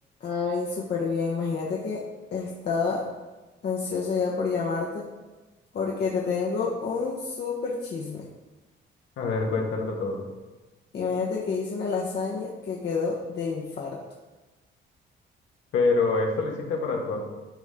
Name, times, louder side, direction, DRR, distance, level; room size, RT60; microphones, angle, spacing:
voice 1, 0.2-2.0 2.3-3.0 3.6-5.1 5.7-8.3 10.9-14.0, left 5 dB, 55° left, -3 dB, 1.2 m, -28 dB
voice 2, 9.2-10.2 15.7-17.2, left 3 dB, 80° left, 0 dB, 1.7 m, -25 dB
12.0 x 4.2 x 3.7 m, 1.2 s
cardioid pair, 90°, 20 cm